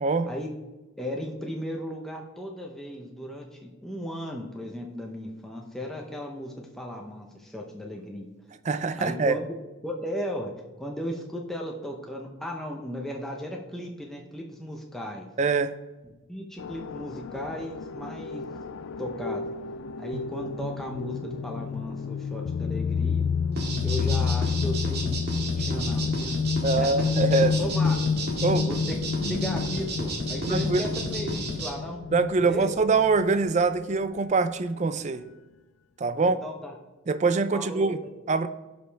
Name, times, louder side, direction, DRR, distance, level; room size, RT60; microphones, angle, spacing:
voice 1, 1.0-8.3 9.0-9.5 9.8-10.5 10.8-15.3 16.3-18.5 19.0-19.4 20.0-23.2 23.8-27.3 27.6-28.0 28.7-32.0 32.4-32.7 36.2-36.8 37.5-38.1, equal, ahead, 0 dB, 0.7 m, -36 dB
voice 2, 8.6-9.4 15.4-15.7 26.6-27.6 28.4-28.7 30.4-30.8 32.1-35.2 36.0-36.4 37.1-38.0 38.3-38.5, right 3 dB, 35° right, 12 dB, 0.4 m, -24 dB
sound 1, 16.6-33.7, left 5 dB, 65° left, 0.3 m, -29 dB
sound 2, 23.5-31.7, right 1 dB, 50° right, 1.9 m, -32 dB
15.5 x 5.3 x 3.4 m, 1.1 s
head